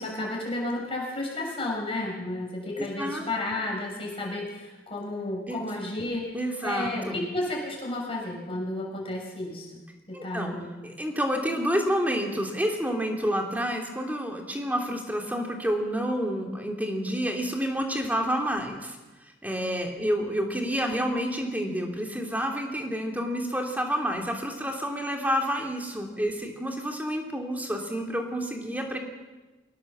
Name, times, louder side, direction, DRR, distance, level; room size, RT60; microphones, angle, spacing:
voice 1, 0.0-6.3 6.6-9.8 10.2-10.7, left 2 dB, 30° left, -1 dB, 6.8 m, -32 dB
voice 2, 2.7-3.3 5.5-5.6 6.3-7.2 10.1-10.5 10.8-19.0 19.4-29.0, equal, 10° right, 2 dB, 2.9 m, -29 dB
23.0 x 18.0 x 7.5 m, 1.2 s
head